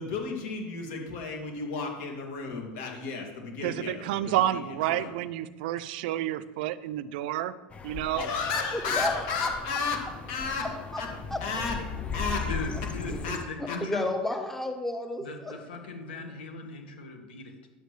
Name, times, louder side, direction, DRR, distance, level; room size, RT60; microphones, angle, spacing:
voice 1, 0.0-5.1 8.2-10.7 11.0-11.1 11.4-11.8 12.1-12.5 13.2-13.4 13.7-13.8, left 4 dB, 65° left, 1 dB, 2.3 m, -33 dB
voice 2, 3.6-7.5 7.8-8.2, right 13 dB, 70° right, 16 dB, 0.4 m, -29 dB
sound 1, 7.7-13.5, left 5 dB, 25° left, 0.6 m, -37 dB
voice 3, 8.7-9.8 10.6-11.0 11.3-11.4 12.7-12.8 13.1-15.5, left 1 dB, 5° left, 5 dB, 0.9 m, -33 dB
voice 4, 12.5-14.1 15.2-17.7, left 3 dB, 90° left, 5 dB, 1.5 m, -38 dB
10.0 x 8.2 x 3.2 m, 1.2 s
supercardioid pair, 115°, 5 cm